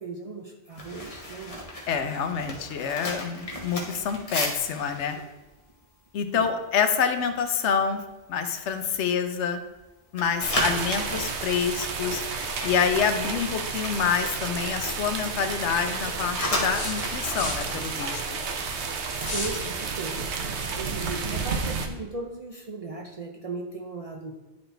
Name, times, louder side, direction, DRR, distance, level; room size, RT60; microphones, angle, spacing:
voice 1, 0.0-1.7 6.3-6.5 19.3-20.3 20.8-24.3, right 3 dB, 45° right, 1 dB, 0.5 m, -37 dB
sound 1, 0.7-6.8 7.1-7.4 7.8-8.1 8.6-9.8 10.1-14.8 15.1-19.6 19.9-20.1, left 1 dB, 30° left, 1.2 m, -35 dB
voice 2, 1.9-5.2 6.1-8.0 8.3-9.6 10.1-12.2 12.6-18.4, left 7 dB, 80° left, 8 dB, 1.0 m, -27 dB
sound 2, 10.4-21.9, right 5 dB, 75° right, 1.0 m, -31 dB
sound 3, 16.7-17.7 19.2-19.6, left 2 dB, 50° left, 1.6 m, -33 dB
10.5 x 4.2 x 3.3 m, 1.1 s
omnidirectional pair, 1.2 m